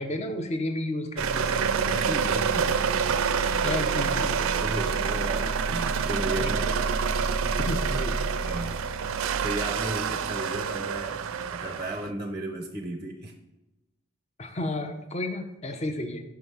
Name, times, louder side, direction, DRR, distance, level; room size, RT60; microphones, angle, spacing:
voice 1, 0.0-1.5 3.6-4.6 6.4-6.8 7.5-8.7 14.4-16.2, left 1 dB, 30° left, 6 dB, 0.6 m, -32 dB
sound 1, 1.2-12.1, right 6 dB, 80° right, 0.4 m, -27 dB
voice 2, 1.9-2.8 4.6-6.7 8.4-9.0 9.4-13.3, right 1 dB, 20° right, 4 dB, 0.5 m, -34 dB
5.8 x 4.7 x 5.5 m, 1.0 s
head